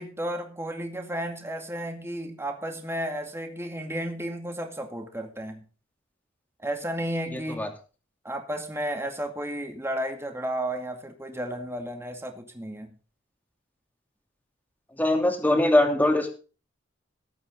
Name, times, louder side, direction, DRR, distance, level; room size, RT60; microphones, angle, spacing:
voice 1, 0.0-5.6 6.6-7.7 8.2-12.9, right 1 dB, 15° right, 4 dB, 2.2 m, -33 dB
voice 2, 7.3-7.7 15.0-16.3, left 1 dB, 10° left, 3 dB, 2.8 m, -22 dB
19.5 x 8.9 x 3.9 m, 0.36 s
head